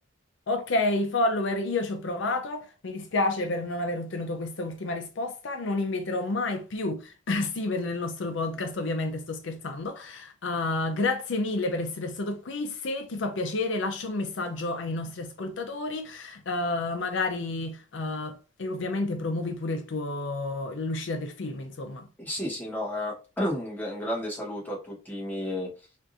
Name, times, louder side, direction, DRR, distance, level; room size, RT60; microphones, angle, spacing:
voice 1, 0.5-22.1, left 2 dB, 70° left, 0.5 m, -30 dB
voice 2, 22.2-25.7, left 1 dB, 10° left, 1.2 m, -32 dB
3.5 x 2.5 x 2.6 m
head